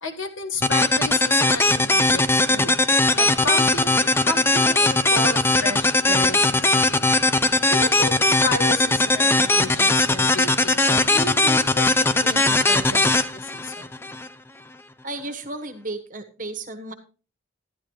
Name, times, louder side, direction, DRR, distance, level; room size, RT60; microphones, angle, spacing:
voice 1, 0.0-2.8 3.1-7.1 7.7-8.2 8.4-13.9, left 2 dB, 80° left, 6 dB, 1.6 m, -32 dB
sound 1, 0.6-14.3, left 2 dB, 10° left, 0.5 m, -19 dB
voice 2, 15.0-16.9, right 2 dB, 40° right, 8 dB, 1.3 m, -33 dB
11.5 x 11.5 x 3.2 m, 0.36 s
head